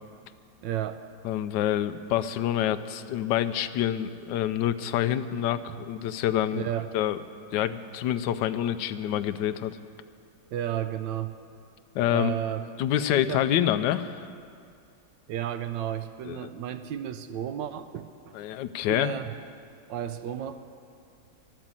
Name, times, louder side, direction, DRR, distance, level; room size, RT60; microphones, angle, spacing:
voice 1, 0.6-1.0 6.5-6.9 10.5-11.3 12.1-12.6 13.1-13.4 15.3-18.4 18.9-19.3 19.9-20.6, right 11 dB, 75° right, 10 dB, 1.2 m, -32 dB
voice 2, 1.2-6.7 6.9-7.2 7.5-9.8 11.9-12.4 12.8-14.3 16.2-16.5 18.3-19.1, left 11 dB, 75° left, 11 dB, 1.2 m, -27 dB
12.5 x 12.0 x 7.4 m, 2.3 s
omnidirectional pair, 2.1 m